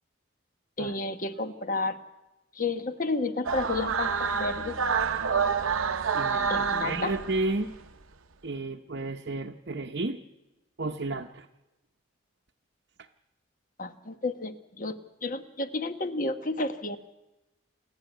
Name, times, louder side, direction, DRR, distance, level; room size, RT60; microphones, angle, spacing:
voice 1, 0.8-2.0 2.5-4.8 6.5-7.1 13.8-17.0, left 2 dB, 40° left, 8 dB, 1.3 m, -31 dB
sound 1, 3.4-7.8, right 5 dB, 90° right, 0.9 m, -28 dB
voice 2, 6.1-7.7 8.4-10.2 10.8-11.5, right 2 dB, 55° right, 3 dB, 0.9 m, -32 dB
28.0 x 11.0 x 9.2 m, 1.0 s
head